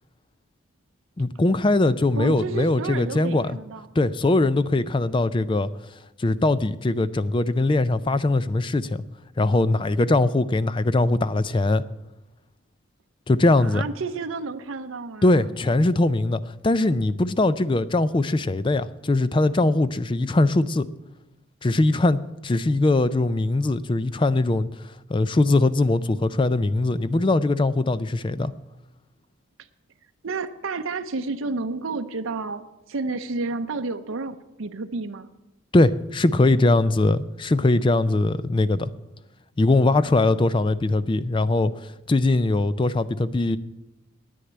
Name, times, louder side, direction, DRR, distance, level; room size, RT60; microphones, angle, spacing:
voice 1, 1.2-3.6 4.0-5.7 6.2-9.0 9.4-11.8 13.3-13.8 15.2-20.9 21.6-24.7 25.1-28.5 35.7-38.9 39.6-41.7 42.1-43.6, left 2 dB, 25° left, 0.4 m, -21 dB
voice 2, 2.1-3.9 13.6-15.5 30.2-35.3, right 3 dB, 75° right, 0.7 m, -31 dB
10.0 x 9.3 x 8.6 m
head